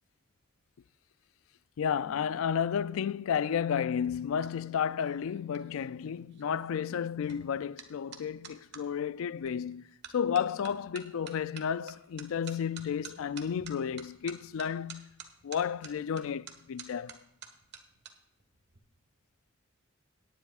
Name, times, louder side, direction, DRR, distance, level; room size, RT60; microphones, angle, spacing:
voice 1, 1.8-15.1 15.4-17.2, left 7 dB, 75° left, 0.3 m, -32 dB
sound 1, 3.8-8.8 9.5-9.7 10.0-18.1 18.4-18.8, right 7 dB, 55° right, 1.5 m, -50 dB
18.0 x 10.5 x 2.4 m
head